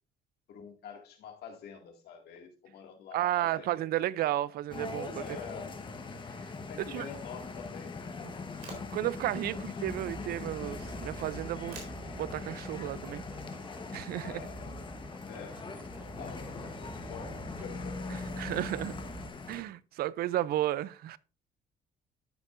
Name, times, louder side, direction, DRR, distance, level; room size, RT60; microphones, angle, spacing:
voice 1, 0.5-3.9 4.4-4.5 5.2-5.8 6.7-8.6 9.5-9.6 9.9-10.1 14.2-14.7 15.2-15.7 16.0-16.5 16.9-18.6, left 6 dB, 75° left, 2.1 m, -47 dB
voice 2, 3.1-5.2 6.9-7.1 8.2-8.3 8.9-11.8 12.1-13.2 13.9-14.4 18.4-18.9 19.5-21.2, right 14 dB, 65° right, 0.5 m, -33 dB
sound 1, 4.7-19.6, left 4 dB, 30° left, 1.1 m, -41 dB
sound 2, 8.4-14.8, right 4 dB, 85° right, 4.0 m, -55 dB
sound 3, 9.7-19.3, right 3 dB, 10° right, 0.8 m, -47 dB
12.5 x 5.4 x 2.5 m
cardioid pair, 110°, 17 cm